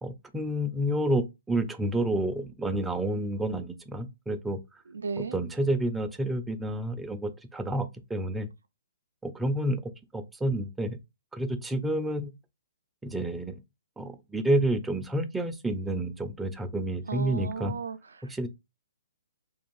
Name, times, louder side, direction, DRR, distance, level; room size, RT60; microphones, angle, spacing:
voice 1, 0.0-4.6 5.3-8.5 9.2-9.8 10.1-11.0 11.3-12.3 13.0-13.6 14.0-17.7 18.3-18.5, right 1 dB, 5° right, 0.4 m, -29 dB
voice 2, 4.9-5.4 17.1-18.5, right 5 dB, 85° right, 0.4 m, -35 dB
2.6 x 2.3 x 3.0 m
hypercardioid pair, 145°, 0 cm